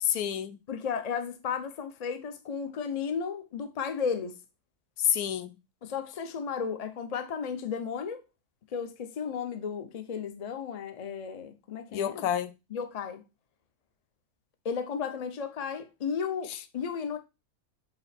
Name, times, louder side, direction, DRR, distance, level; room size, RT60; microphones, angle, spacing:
voice 1, 0.0-0.6 5.0-5.6 11.9-12.5, left 10 dB, 90° left, 1.1 m, -28 dB
voice 2, 0.7-4.4 5.8-8.2 8.7-12.3 12.7-13.2 14.6-17.2, left 6 dB, 40° left, 0.5 m, -34 dB
7.9 x 3.1 x 4.2 m
omnidirectional pair, 1.6 m